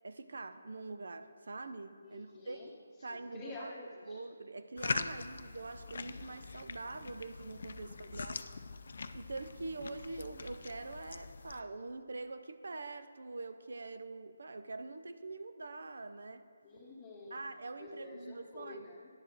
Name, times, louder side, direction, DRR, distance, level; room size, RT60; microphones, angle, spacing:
voice 1, 0.0-2.6 3.0-3.7 4.1-8.4 9.1-16.4 17.3-18.8, right 3 dB, 65° right, 10 dB, 0.6 m, -44 dB
voice 2, 2.0-2.7 3.0-4.2 5.0-5.4 7.8-8.3 16.6-17.5 17.8-19.1, left 2 dB, 20° left, -6 dB, 1.1 m, -49 dB
sound 1, 4.8-11.6, left 4 dB, 55° left, 0.4 m, -42 dB
10.5 x 7.5 x 4.6 m, 2.2 s
figure-of-eight pair, 150°, 0 cm